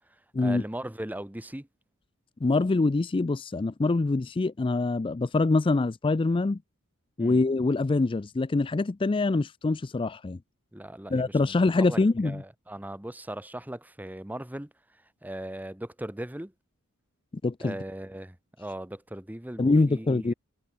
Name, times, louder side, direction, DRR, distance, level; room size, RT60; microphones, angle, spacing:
voice 1, 0.4-1.7 7.2-7.4 10.7-11.6 11.9-14.7 15.2-16.5 17.6-20.3, right 1 dB, 10° right, 1.0 m, -38 dB
voice 2, 2.4-6.6 7.2-10.4 11.1-12.4 17.4-17.7 19.6-20.3, left 3 dB, 25° left, 0.4 m, -24 dB
head